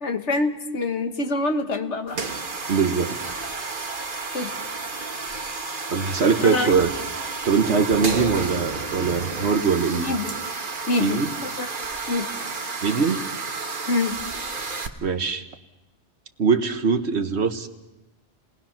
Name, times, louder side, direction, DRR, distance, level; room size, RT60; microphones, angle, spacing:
voice 1, 0.0-2.2 4.3-4.5 6.4-6.7 10.0-10.3 10.9-11.7 12.1-12.3 13.9-14.2, left 3 dB, 80° left, 6 dB, 1.8 m, -25 dB
sound 1, 2.1-14.9, right 4 dB, 50° right, 1.4 m, -31 dB
voice 2, 2.7-3.3 5.9-6.9 7.4-10.1 11.0-11.3 12.8-13.2 14.5-14.6 15.0-15.4 16.4-17.7, right 5 dB, 70° right, 8 dB, 1.5 m, -22 dB
29.0 x 20.0 x 5.8 m, 0.99 s
omnidirectional pair, 1.2 m